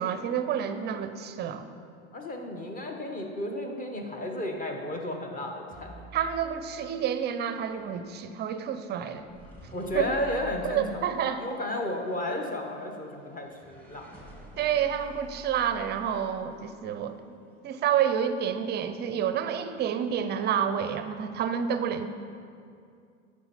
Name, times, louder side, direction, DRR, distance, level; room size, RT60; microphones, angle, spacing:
voice 1, 0.0-1.7 6.1-9.3 9.9-10.2 10.7-11.5 14.6-22.1, right 8 dB, 30° right, 10 dB, 0.5 m, -29 dB
voice 2, 2.1-5.9 9.7-11.0 11.3-14.1, left 1 dB, 25° left, 3 dB, 1.2 m, -33 dB
sound 1, 5.7-17.0, equal, 5° left, 1.7 m, -50 dB
12.5 x 4.8 x 4.3 m, 2.4 s
hypercardioid pair, 95°, 35 cm